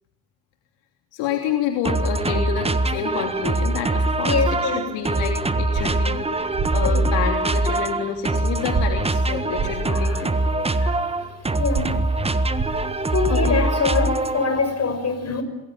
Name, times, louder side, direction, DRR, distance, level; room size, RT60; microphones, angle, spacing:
voice 1, 1.1-10.4 13.3-13.6, left 8 dB, 60° left, 3 dB, 3.2 m, -28 dB
sound 1, 1.8-14.6, right 2 dB, 10° right, 1.5 m, -23 dB
voice 2, 4.2-4.8 6.8-7.0 9.9-10.0 10.5-10.9 11.6-11.9 13.1-15.4, left 4 dB, 30° left, 8 dB, 6.4 m, -24 dB
sound 2, 5.7-5.9 6.5-6.7 8.7-8.9 9.5-9.7 11.7-11.9 12.5-12.7, right 6 dB, 35° right, 6.1 m, -26 dB
28.0 x 21.0 x 9.1 m, 0.97 s
figure-of-eight pair, 65°, 49 cm